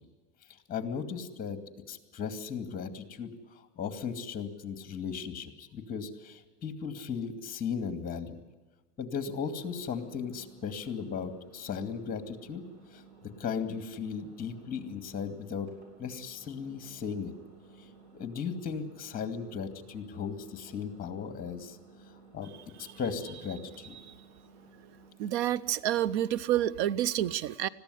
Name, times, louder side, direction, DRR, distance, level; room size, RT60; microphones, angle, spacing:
voice 1, 0.7-1.6 1.9-8.4 9.0-12.7 12.9-13.0 13.4-15.7 16.0-17.3 18.1-21.8 22.3-22.5 22.8-23.9, left 6 dB, 25° left, 8 dB, 2.4 m, -36 dB
Engine, 9.5-25.1, right 4 dB, 50° right, 7.4 m, -56 dB
voice 2, 25.2-27.7, right 12 dB, 65° right, 19 dB, 0.8 m, -28 dB
20.5 x 15.0 x 9.9 m, 1.3 s
supercardioid pair, 130°, 35 cm